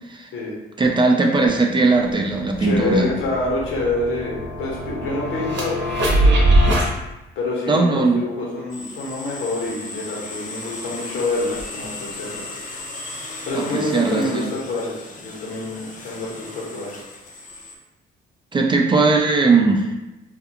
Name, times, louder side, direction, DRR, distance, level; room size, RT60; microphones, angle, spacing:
voice 1, 0.8-3.1 7.7-8.2 13.5-14.5 18.5-19.9, right 3 dB, 25° right, 1 dB, 0.3 m, -18 dB
sound 1, 1.9-6.9, right 1 dB, 65° right, 0.8 m, -21 dB
voice 2, 2.6-6.4 7.4-12.5 13.4-16.9, left 2 dB, 75° left, -4 dB, 0.9 m, -27 dB
sound 2, 8.7-17.8, left 2 dB, 40° left, 0.5 m, -36 dB
2.4 x 2.3 x 2.8 m, 1.0 s
cardioid pair, 90°, 20 cm